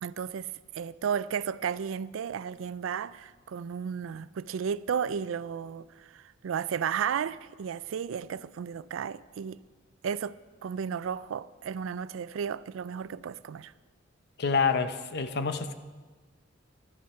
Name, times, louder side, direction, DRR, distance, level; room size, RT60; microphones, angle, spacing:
voice 1, 0.0-9.6 10.0-10.3 10.6-13.7, right 7 dB, 80° right, 0.4 m, -33 dB
voice 2, 14.4-15.7, left 5 dB, 55° left, 0.7 m, -27 dB
12.0 x 10.5 x 5.5 m
head